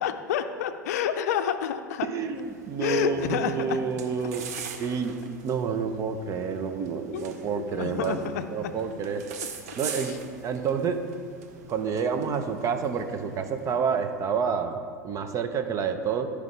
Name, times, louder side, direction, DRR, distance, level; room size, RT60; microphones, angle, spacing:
voice 1, 0.0-2.1 2.8-3.8 7.1-7.3 7.5-8.7 10.0-10.2 11.9-12.2, left 9 dB, 65° left, 9 dB, 0.5 m, -29 dB
voice 2, 2.0-4.5 4.8-5.2 5.4-9.2 9.8-10.1 10.4-11.0 11.7-16.3, right 6 dB, 35° right, 8 dB, 0.8 m, -29 dB
sound 1, 2.2-14.0, right 7 dB, 65° right, 0.9 m, -43 dB
14.0 x 4.9 x 3.3 m, 2.1 s
hypercardioid pair, 85°, 9 cm